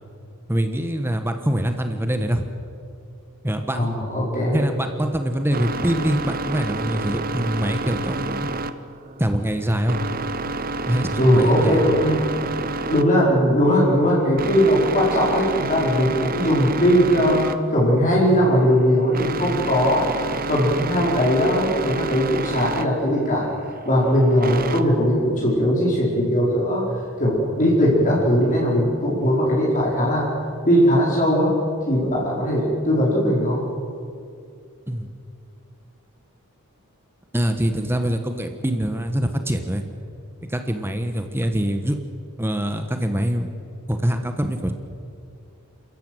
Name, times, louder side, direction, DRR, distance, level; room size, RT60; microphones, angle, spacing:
voice 1, 0.5-2.5 3.4-3.9 4.5-8.5 9.2-10.0 10.8-11.8 34.9-35.1 37.3-39.8 40.5-42.0 42.4-43.5 43.9-44.7, equal, 10° right, 6 dB, 1.2 m, -24 dB
voice 2, 3.7-4.6 11.2-12.2 12.9-17.4 17.7-20.2 20.5-23.5 23.8-26.8 27.2-30.2 30.7-31.5 31.9-33.6, equal, 35° left, -5 dB, 4.7 m, -19 dB
sound 1, 4.9-24.8, right 3 dB, 40° right, 1.0 m, -30 dB
28.5 x 14.5 x 9.1 m, 2.4 s
head